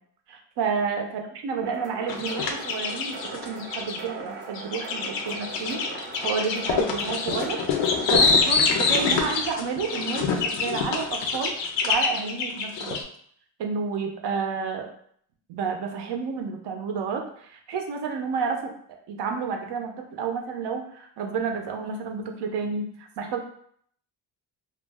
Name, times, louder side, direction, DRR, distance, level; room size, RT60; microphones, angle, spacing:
voice 1, 0.3-5.8 6.2-7.6 8.1-11.6 11.8-13.0 13.6-14.9 15.5-18.7 19.1-23.4, right 5 dB, 70° right, 3 dB, 0.6 m, -30 dB
sound 1, 1.6-8.5, right 3 dB, 30° right, 0.4 m, -40 dB
sound 2, 2.1-4.0 4.6-13.0, left 5 dB, 80° left, 0.5 m, -25 dB
2.4 x 2.1 x 3.3 m, 0.64 s
cardioid pair, 115°, 43 cm